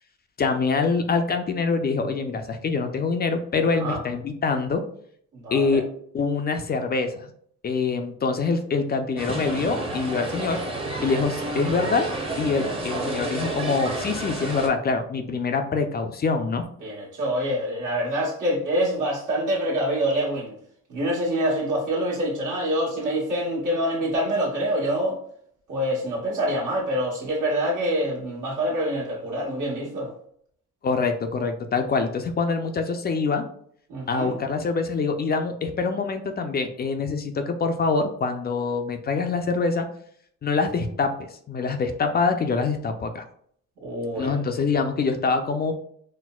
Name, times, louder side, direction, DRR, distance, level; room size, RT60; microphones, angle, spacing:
voice 1, 0.4-4.8 5.5-5.8 6.1-7.3 7.6-10.6 11.0-12.1 12.4-16.6 30.8-33.5 34.1-39.9 40.4-41.1 41.5-43.2 44.2-45.8, left 4 dB, 35° left, 6 dB, 0.4 m, -25 dB
voice 2, 5.3-5.8 16.8-20.5 20.9-25.2 25.7-30.1 33.9-34.4 43.8-44.4, equal, 80° right, -4 dB, 1.4 m, -26 dB
sound 1, 9.2-14.7, right 2 dB, 20° right, 0.7 m, -30 dB
4.2 x 2.0 x 2.3 m, 0.64 s
cardioid pair, 90°, 30 cm